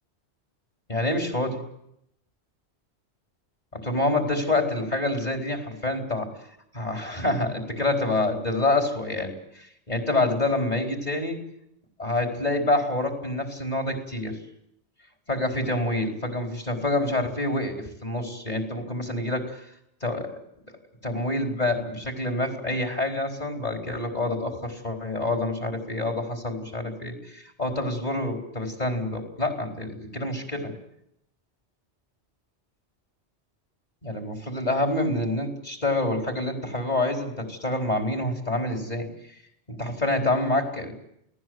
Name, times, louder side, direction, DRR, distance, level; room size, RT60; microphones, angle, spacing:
voice 1, 0.9-1.6 3.7-6.3 6.7-11.4 12.0-14.4 15.3-19.6 20.0-20.4 21.0-30.7 34.0-39.1 39.7-40.9, left 2 dB, 35° left, 3 dB, 4.5 m, -27 dB
29.0 x 19.0 x 8.0 m, 0.76 s
omnidirectional pair, 1.1 m